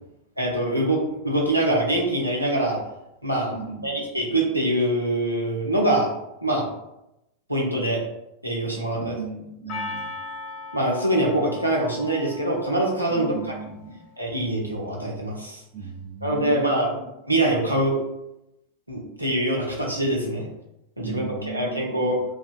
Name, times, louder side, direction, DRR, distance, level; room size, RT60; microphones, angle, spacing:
voice 1, 0.4-2.8 3.2-3.6 3.8-6.1 6.4-6.7 7.5-8.0 8.4-9.2 10.7-13.5 14.2-15.6 16.2-16.9 17.3-17.9 18.9-20.5 21.0-22.2, right 1 dB, 90° right, -2 dB, 0.5 m, -24 dB
voice 2, 3.5-4.0 8.9-10.1 13.1-14.0 15.7-17.1 21.0-22.2, right 3 dB, 30° right, 2 dB, 0.4 m, -37 dB
Percussion, 9.7-14.0, left 2 dB, 40° left, 0.5 m, -38 dB
2.5 x 2.3 x 2.3 m, 0.88 s
figure-of-eight pair, 90°, 0 cm